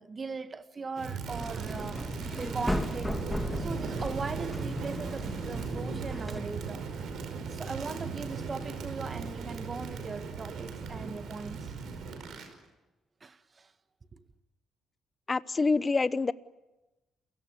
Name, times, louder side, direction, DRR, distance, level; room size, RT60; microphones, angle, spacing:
voice 1, 0.0-2.1 2.4-3.2 3.6-6.9 7.5-11.7 13.2-13.7 14.1-14.2, right 4 dB, 35° right, 1.6 m, -39 dB
Crackle, 1.0-12.5, right 5 dB, 70° right, 5.1 m, -37 dB
sound 1, 1.4-6.4, left 1 dB, 5° left, 2.9 m, -36 dB
voice 2, 15.3-16.3, left 3 dB, 30° left, 0.8 m, -26 dB
28.5 x 17.5 x 9.5 m
cardioid pair, 90°, 0 cm